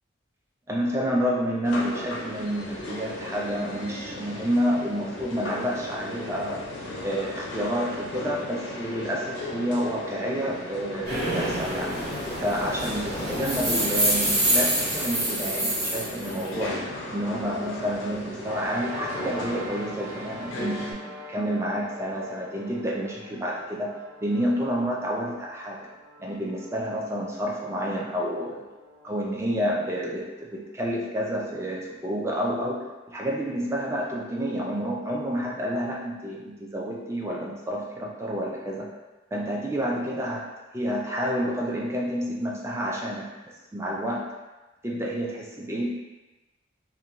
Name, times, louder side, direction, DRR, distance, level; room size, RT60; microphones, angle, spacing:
voice 1, 0.7-6.6 7.0-12.0 12.4-25.9 26.2-28.6 29.0-38.9 39.3-43.3 43.7-44.3 44.8-45.9, equal, 15° right, -3 dB, 0.3 m, -29 dB
sound 1, 1.6-20.9, left 1 dB, 85° left, 0.5 m, -36 dB
sound 2, 11.0-16.4, right 1 dB, 60° right, 1.1 m, -26 dB
sound 3, 18.4-31.1, equal, 40° right, 0.8 m, -45 dB
2.5 x 2.1 x 2.9 m, 1.1 s
head